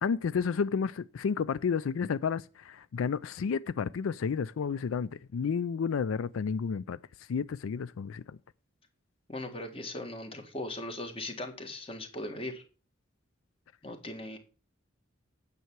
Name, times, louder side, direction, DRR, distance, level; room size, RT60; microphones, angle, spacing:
voice 1, 0.0-8.4, left 6 dB, 90° left, 0.4 m, -31 dB
voice 2, 9.3-12.6 13.8-14.4, left 1 dB, 25° left, 1.6 m, -39 dB
9.4 x 7.0 x 4.6 m
head